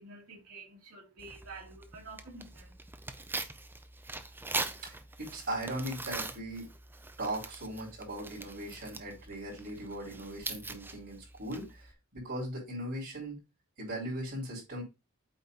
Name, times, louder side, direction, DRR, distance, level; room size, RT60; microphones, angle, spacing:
voice 1, 0.0-2.7, right 3 dB, 80° right, 2.5 m, -49 dB
Tearing, 1.2-11.9, right 3 dB, 10° right, 0.5 m, -42 dB
voice 2, 4.8-6.7 7.2-13.4 13.8-14.8, right 1 dB, 50° right, 4.8 m, -39 dB
8.2 x 4.2 x 4.1 m
head